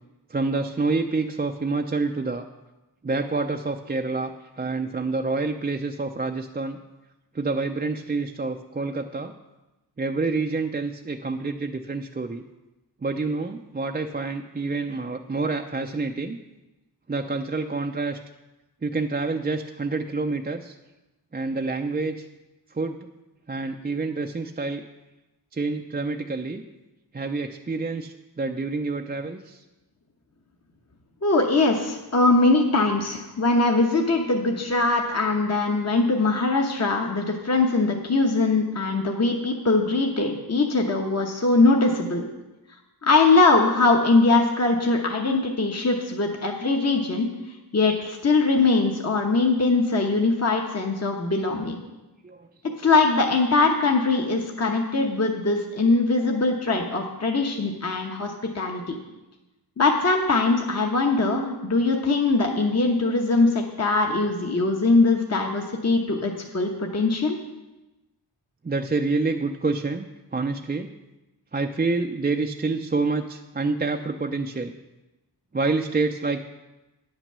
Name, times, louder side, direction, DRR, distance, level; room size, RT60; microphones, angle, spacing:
voice 1, 0.3-2.4 3.0-6.8 7.3-9.3 10.0-12.4 13.0-16.4 17.1-18.2 18.8-20.8 21.3-22.3 22.7-23.0 23.5-24.8 25.5-26.6 27.1-29.6 52.2-52.5 68.6-70.1 70.3-70.9 71.5-74.7 75.5-76.4, right 3 dB, 25° right, 4 dB, 0.4 m, -27 dB
voice 2, 31.2-42.2 43.0-47.3 47.7-51.8 52.8-58.9 59.8-67.4, left 3 dB, 40° left, 1 dB, 1.0 m, -21 dB
9.7 x 6.0 x 6.7 m, 1.0 s
wide cardioid pair, 95°, 42 cm